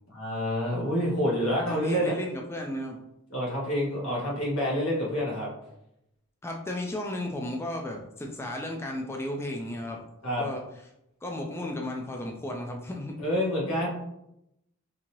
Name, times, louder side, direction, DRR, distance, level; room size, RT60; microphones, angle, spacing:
voice 1, 0.1-2.1 3.3-5.5 10.2-10.4 13.2-13.9, equal, 85° left, -4 dB, 1.5 m, -27 dB
voice 2, 1.7-3.0 6.4-10.0 10.4-10.6 11.2-13.2, left 1 dB, 10° left, 1 dB, 0.3 m, -34 dB
3.8 x 2.7 x 3.0 m, 0.83 s
head